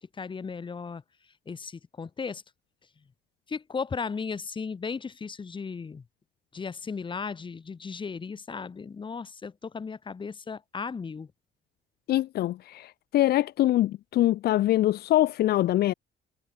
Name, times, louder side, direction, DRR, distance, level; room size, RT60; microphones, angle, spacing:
voice 1, 0.2-1.0 1.5-2.4 3.5-6.0 6.5-11.3, left 5 dB, 30° left, 4.4 m, -36 dB
voice 2, 12.1-15.9, left 14 dB, 70° left, 1.9 m, -24 dB
cardioid pair, 110°, 17 cm